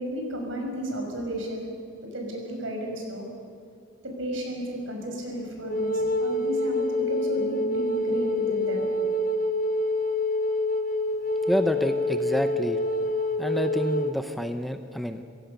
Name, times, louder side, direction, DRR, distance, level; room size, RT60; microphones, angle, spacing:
voice 1, 0.0-1.7 2.0-3.3 4.0-8.9, equal, 70° right, 2 dB, 5.9 m, -33 dB
Wind instrument woodwind instrument, 5.7-14.1, left 1 dB, 40° left, 1.2 m, -26 dB
voice 2, 11.5-12.8 13.4-15.2, equal, ahead, 7 dB, 0.8 m, -28 dB
27.5 x 16.5 x 6.8 m, 2.6 s
head